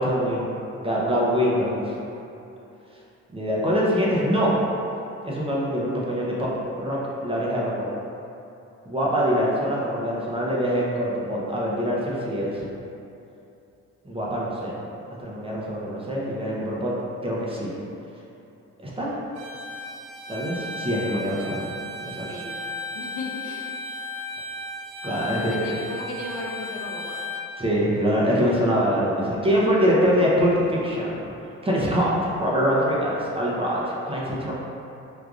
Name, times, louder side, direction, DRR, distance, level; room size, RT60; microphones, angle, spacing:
voice 1, 0.0-1.9 3.3-4.6 5.2-7.9 8.9-12.6 14.0-14.8 15.2-16.9 17.2-17.7 18.8-19.1 20.3-22.3 25.0-25.8 27.6-31.2 31.6-34.5, equal, 20° right, -6 dB, 0.7 m, -24 dB
Bowed string instrument, 19.3-27.5, left 2 dB, 80° right, 0.5 m, -35 dB
voice 2, 22.1-22.7 22.9-23.8 25.3-27.2, left 2 dB, 75° left, -2 dB, 0.6 m, -36 dB
4.6 x 2.4 x 2.5 m, 2.8 s
cardioid pair, 90°, 30 cm